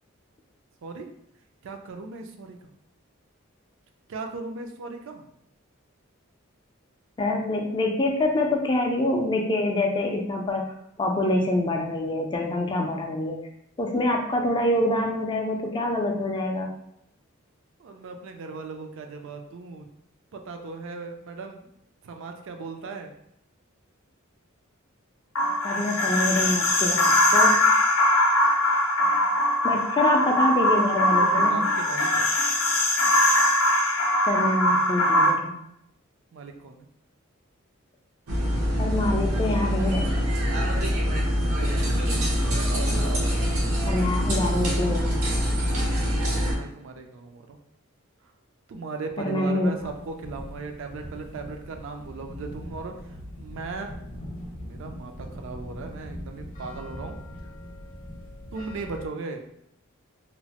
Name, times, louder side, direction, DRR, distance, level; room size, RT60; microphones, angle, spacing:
voice 1, 0.8-1.1 1.6-2.6 4.1-5.3 17.8-19.9 20.3-21.7 22.0-23.1 31.2-32.3 36.3-36.9 41.6-42.1 46.5-47.6 48.7-52.9 53.4-54.0 54.6-57.2 58.5-59.4, right 4 dB, 65° right, 5 dB, 0.4 m, -37 dB
voice 2, 7.2-10.6 11.0-13.4 13.8-16.7 25.6-27.6 29.6-31.6 34.3-35.5 38.8-40.3 43.8-45.2 49.2-49.7, left 1 dB, 20° left, 1 dB, 0.3 m, -25 dB
sound 1, 25.3-35.3, left 1 dB, 75° left, 0.5 m, -21 dB
sound 2, 38.3-46.6, equal, 90° right, 0.7 m, -24 dB
sound 3, 49.7-59.1, left 1 dB, 40° left, 0.7 m, -41 dB
2.9 x 2.0 x 2.8 m, 0.76 s
head